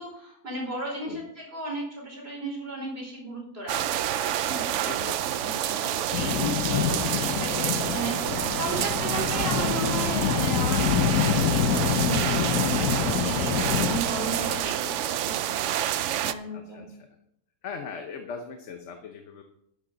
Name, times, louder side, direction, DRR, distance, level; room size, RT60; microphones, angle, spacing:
voice 1, 0.0-3.8 4.4-5.0 5.4-15.0 15.2-15.6 16.2-16.9, right 1 dB, 40° right, -2 dB, 4.8 m, -35 dB
sound 1, 3.7-16.3, right 11 dB, 65° right, 0.8 m, -28 dB
voice 2, 4.8-5.4 14.8-15.4 16.5-17.2 17.6-19.4, left 5 dB, 55° left, 5 dB, 1.2 m, -40 dB
sound 2, 6.1-14.0, left 9 dB, 85° left, 1.2 m, -27 dB
sound 3, 8.2-14.6, right 1 dB, 85° right, 2.3 m, -36 dB
12.5 x 10.0 x 4.0 m, 0.75 s
omnidirectional pair, 1.5 m